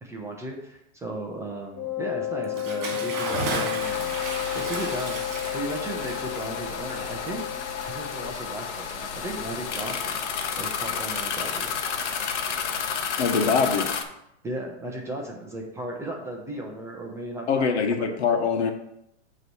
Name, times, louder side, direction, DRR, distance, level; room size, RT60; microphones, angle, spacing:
voice 1, 0.0-4.2 4.5-5.2 5.5-7.4 7.8-10.2 10.6-11.7 14.4-18.1, right 1 dB, 10° right, -1 dB, 0.8 m, -35 dB
Wind instrument woodwind instrument, 1.7-8.4, left 13 dB, 25° left, 1.7 m, -32 dB
Bathtub (filling or washing) / Splash splatter, 2.4-8.4, right 3 dB, 45° right, 2.5 m, -35 dB
sound 1, 3.8-14.0, left 6 dB, 85° left, 1.1 m, -31 dB
voice 2, 13.2-14.0 17.5-18.7, left 5 dB, 65° left, 5 dB, 1.3 m, -23 dB
8.2 x 3.2 x 6.2 m, 0.80 s
supercardioid pair, 155°, 35 cm